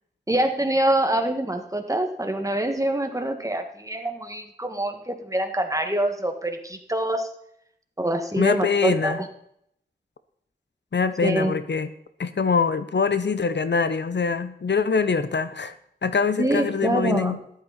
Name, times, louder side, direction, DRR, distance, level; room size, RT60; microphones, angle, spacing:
voice 1, 0.3-7.3 8.0-9.3 11.2-11.6 16.4-17.4, right 1 dB, 20° right, 5 dB, 1.9 m, -25 dB
voice 2, 8.4-9.2 10.9-11.9 12.2-15.7 16.0-17.4, left 5 dB, 75° left, 12 dB, 0.9 m, -23 dB
14.0 x 11.5 x 4.2 m, 0.72 s
wide cardioid pair, 65°, 18 cm